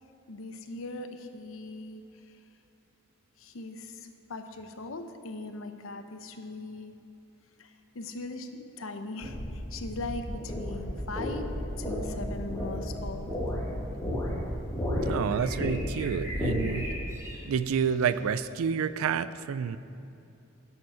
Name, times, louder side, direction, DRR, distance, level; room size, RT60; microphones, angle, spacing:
voice 1, 0.3-2.0 3.4-7.0 7.6-11.5 11.8-13.3, left 2 dB, 75° left, 7 dB, 0.7 m, -40 dB
sound 1, 9.2-16.9, equal, 15° left, 1.8 m, -33 dB
sound 2, 11.7-18.7, equal, 15° right, 1.7 m, -46 dB
voice 2, 15.0-16.9 17.4-19.8, right 7 dB, 90° right, 15 dB, 0.4 m, -29 dB
10.5 x 7.2 x 4.8 m, 2.7 s
head